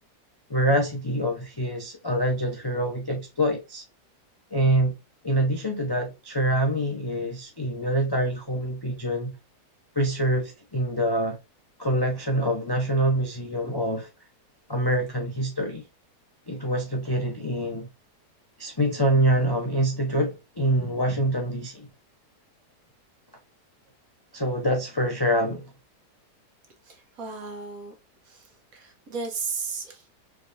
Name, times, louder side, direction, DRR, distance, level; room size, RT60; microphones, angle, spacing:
voice 1, 0.5-3.8 4.5-4.9 5.2-9.4 10.0-11.4 11.8-14.1 14.7-15.8 16.5-17.9 18.6-21.9 24.3-25.7, right 1 dB, 40° left, 0.3 m, -25 dB
voice 2, 26.8-27.9 28.3-30.1, right 4 dB, 60° right, 1.5 m, -35 dB
4.6 x 3.3 x 2.5 m
omnidirectional pair, 1.7 m